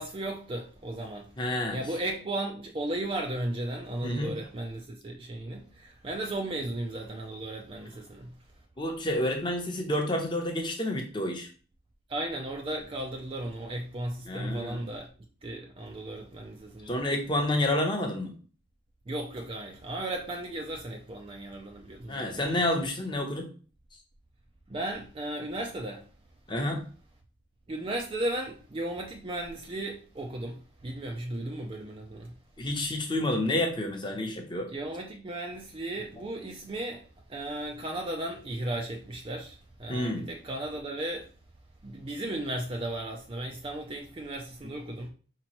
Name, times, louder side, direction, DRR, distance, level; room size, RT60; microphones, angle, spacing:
voice 1, 0.0-1.3 1.7-8.3 12.1-15.1 15.4-17.0 19.1-22.6 24.7-26.0 27.7-32.3 34.7-41.3 41.8-45.1, right 1 dB, 25° right, 0.4 m, -35 dB
voice 2, 1.4-1.8 4.0-4.3 8.8-11.5 14.3-14.8 16.8-18.3 22.1-23.5 26.5-26.8 32.6-34.7 39.9-40.2, left 1 dB, 25° left, 0.8 m, -29 dB
5.2 x 3.0 x 2.9 m
head